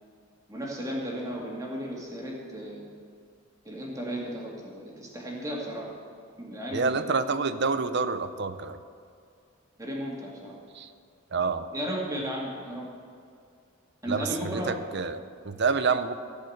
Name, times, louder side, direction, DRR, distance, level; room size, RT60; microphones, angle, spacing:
voice 1, 0.5-2.9 3.6-5.9 6.4-7.1 9.8-10.5 11.7-12.9 14.0-14.8, equal, 15° right, -3 dB, 2.2 m, -34 dB
voice 2, 6.7-8.8 10.7-10.9 11.3-11.7 14.1-16.1, right 4 dB, 55° right, 11 dB, 0.6 m, -28 dB
16.5 x 5.5 x 7.9 m, 2.3 s
head